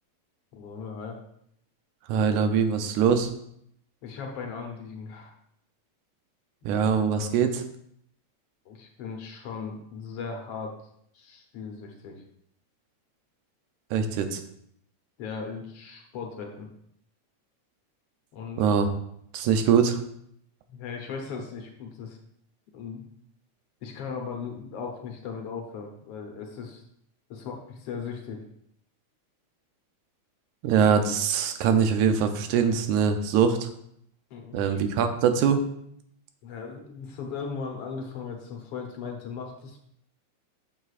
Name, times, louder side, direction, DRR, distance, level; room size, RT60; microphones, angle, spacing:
voice 1, 0.5-1.2 4.0-5.3 7.1-7.3 8.6-10.8 11.1-12.2 15.2-16.7 18.3-18.7 20.7-22.2 22.7-23.0 23.8-26.8 27.3-28.4 34.3-34.8 36.4-39.8, left 5 dB, 60° left, 2 dB, 1.7 m, -38 dB
voice 2, 2.1-3.3 6.7-7.6 13.9-14.4 18.6-18.9 19.3-20.0 30.6-33.7 34.5-35.6, right 7 dB, 85° right, 7 dB, 2.1 m, -23 dB
8.0 x 7.3 x 2.4 m, 0.72 s
omnidirectional pair, 3.4 m